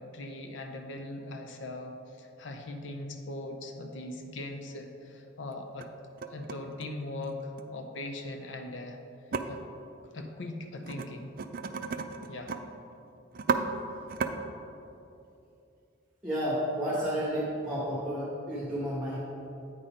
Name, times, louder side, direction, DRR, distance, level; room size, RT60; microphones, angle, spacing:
voice 1, 0.0-5.9 6.3-9.0 9.5-9.6 10.1-11.3 12.3-12.6, left 2 dB, 75° left, 4 dB, 0.6 m, -40 dB
sound 1, 4.1-4.2 4.7-4.8 5.5-5.9 6.2-7.6 9.3-9.4 10.8-11.1 11.4-12.6 12.9-13.0 13.3-13.6 14.1-14.3, right 5 dB, 50° right, 0.3 m, -33 dB
voice 2, 16.2-19.2, equal, 5° right, -8 dB, 1.3 m, -31 dB
8.8 x 4.2 x 5.0 m, 2.8 s
head